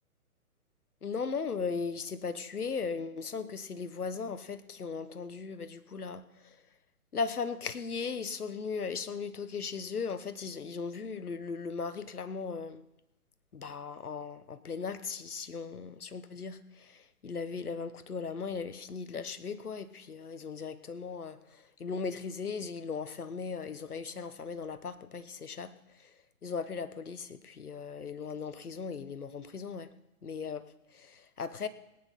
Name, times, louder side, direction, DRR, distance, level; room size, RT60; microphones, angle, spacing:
voice 1, 1.0-6.6 7.1-12.8 13.5-26.2 26.4-29.9 30.2-30.6 30.9-31.7, left 5 dB, 80° left, 12 dB, 1.3 m, -37 dB
18.5 x 9.7 x 5.6 m, 0.89 s
figure-of-eight pair, 135°, 45 cm